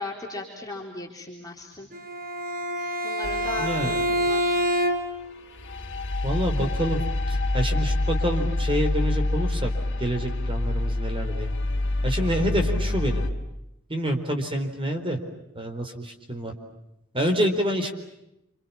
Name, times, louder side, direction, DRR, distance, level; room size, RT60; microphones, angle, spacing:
voice 1, 0.0-1.9 3.0-4.7, left 3 dB, 15° left, -2 dB, 3.9 m, -37 dB
Bowed string instrument, 1.9-5.3, equal, 45° right, 4.3 m, -26 dB
sound 1, 3.2-5.0 5.6-13.3, left 2 dB, 55° left, 2.7 m, -27 dB
voice 2, 3.6-4.0 6.2-7.0 7.3-9.7 10.0-11.5 12.0-13.2 13.9-15.2 15.5-16.5 17.1-17.9, equal, 25° right, 5 dB, 4.3 m, -27 dB
29.0 x 28.5 x 7.3 m, 0.88 s
head